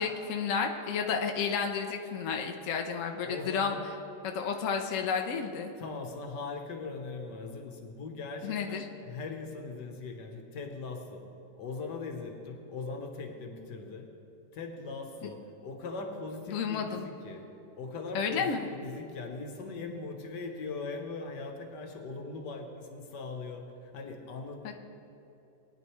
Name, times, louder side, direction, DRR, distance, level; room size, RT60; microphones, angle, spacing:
voice 1, 0.0-3.7 4.2-5.7 8.4-8.8 16.5-17.1 18.1-18.7 24.6-24.7, left 6 dB, 55° left, 3 dB, 1.0 m, -31 dB
voice 2, 3.2-3.9 5.8-11.3 11.6-14.1 14.5-17.5 17.7-24.7, left 3 dB, 85° left, 4 dB, 1.7 m, -40 dB
20.0 x 9.7 x 3.1 m, 2.8 s
omnidirectional pair, 1.8 m